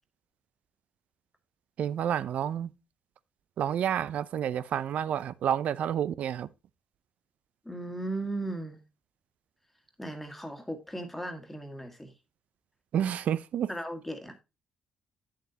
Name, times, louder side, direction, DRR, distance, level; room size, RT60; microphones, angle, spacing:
voice 1, 1.8-2.7 3.6-6.5 12.9-13.7, right 9 dB, 65° right, 0.5 m, -29 dB
voice 2, 7.7-8.8 10.0-12.1 13.7-14.4, right 1 dB, 5° left, 1.8 m, -36 dB
8.4 x 7.5 x 2.8 m
supercardioid pair, 70°, 3 cm